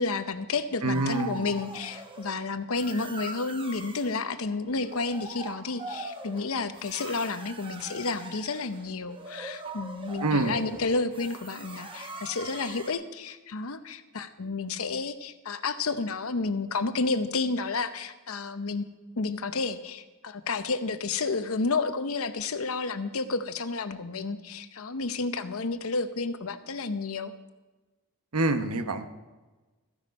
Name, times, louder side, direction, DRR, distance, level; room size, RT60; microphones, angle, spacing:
voice 1, 0.0-18.8 19.2-27.3, left 3 dB, 70° left, 11 dB, 0.8 m, -31 dB
voice 2, 0.8-1.5 10.2-10.5 28.3-29.1, right 2 dB, 85° right, 9 dB, 1.0 m, -26 dB
sound 1, 0.9-2.3 2.7-4.2 4.7-12.9, right 3 dB, 25° right, 1.0 m, -42 dB
14.5 x 9.5 x 5.3 m, 1.2 s
head